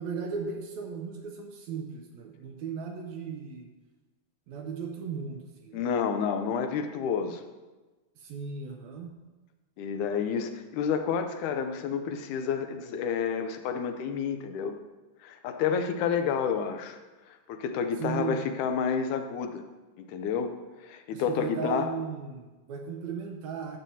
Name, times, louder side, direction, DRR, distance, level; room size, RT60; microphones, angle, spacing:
voice 1, 0.0-3.7 4.5-5.8 8.2-9.1 18.0-18.5 21.1-23.8, right 6 dB, 75° right, 3 dB, 1.8 m, -36 dB
voice 2, 5.7-7.4 9.8-14.8 15.2-17.0 17.5-19.6 20.1-20.5 20.8-21.9, left 6 dB, 80° left, 7 dB, 2.1 m, -29 dB
12.5 x 7.3 x 2.8 m, 1.2 s
omnidirectional pair, 3.6 m